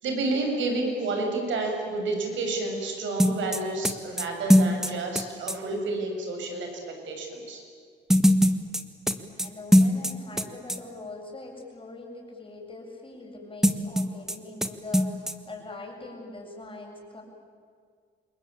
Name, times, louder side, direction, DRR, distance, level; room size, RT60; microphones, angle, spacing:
voice 1, 0.0-7.6, right 2 dB, 75° right, 3 dB, 6.8 m, -30 dB
sound 1, 3.2-5.6 8.1-10.4 10.7-10.8 13.6-14.4 14.6-14.7 14.9-15.3, equal, ahead, 1.6 m, -21 dB
voice 2, 9.4-17.2, left 2 dB, 25° left, 0 dB, 7.6 m, -42 dB
27.5 x 22.0 x 8.9 m, 2.1 s
cardioid pair, 90°, 20 cm